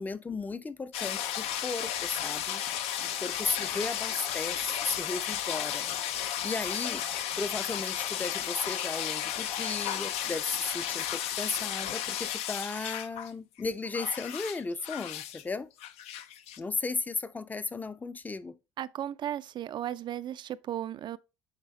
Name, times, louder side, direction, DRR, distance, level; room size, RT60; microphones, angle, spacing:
voice 1, 0.0-2.6 3.0-4.6 4.9-7.1 7.4-15.7 16.6-18.6, left 3 dB, 15° left, 0.5 m, -35 dB
sound 1, 0.9-13.3 13.6-15.4 15.8-16.6, left 10 dB, 75° left, 0.7 m, -34 dB
voice 2, 18.8-21.2, right 11 dB, 45° right, 0.4 m, -35 dB
9.0 x 3.5 x 3.1 m
cardioid pair, 115°, 11 cm